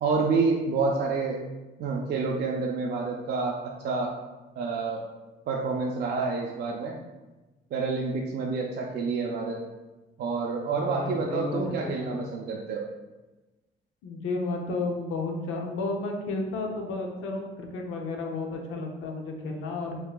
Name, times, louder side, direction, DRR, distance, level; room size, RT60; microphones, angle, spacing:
voice 1, 0.0-1.4 1.8-4.1 4.6-5.0 5.5-6.9 7.7-9.6 10.2-12.9, right 4 dB, 60° right, -1 dB, 0.5 m, -28 dB
voice 2, 10.7-12.1 14.0-20.0, left 3 dB, 90° left, 2 dB, 0.6 m, -32 dB
4.6 x 2.8 x 2.3 m, 1.1 s
cardioid pair, 90°, 20 cm